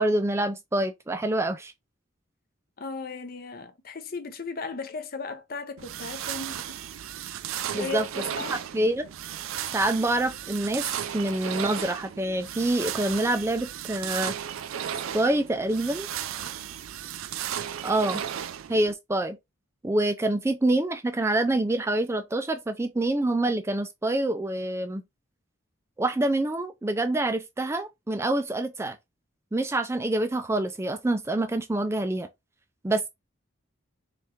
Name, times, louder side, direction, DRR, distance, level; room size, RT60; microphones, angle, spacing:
voice 1, 0.0-1.7 7.7-8.0 8.5-9.0 9.7-10.9 11.1-14.3 15.1-16.1 17.8-18.2 18.7-19.4 19.8-25.0 26.0-29.0 29.5-32.3 32.8-33.1, right 1 dB, 15° right, 0.3 m, -26 dB
voice 2, 2.8-6.8 7.7-8.6, left 4 dB, 45° left, 0.6 m, -36 dB
sound 1, 5.8-18.9, right 9 dB, 85° right, 0.4 m, -35 dB
3.7 x 3.5 x 2.8 m
head